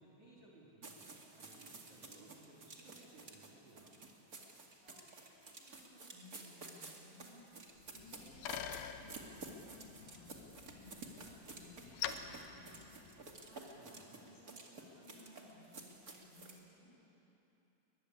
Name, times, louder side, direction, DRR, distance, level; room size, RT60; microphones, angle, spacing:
voice 1, 0.0-4.0 13.6-14.3, right 2 dB, 40° right, -4 dB, 4.0 m, -61 dB
sound 1, 0.8-16.6, right 3 dB, 85° right, 0.8 m, -52 dB
voice 2, 4.3-17.3, left 1 dB, 45° left, -4 dB, 8.6 m, -61 dB
Bicycle, 7.8-13.5, left 9 dB, 75° left, 2.6 m, -47 dB
23.0 x 21.0 x 9.8 m, 3.0 s
omnidirectional pair, 5.7 m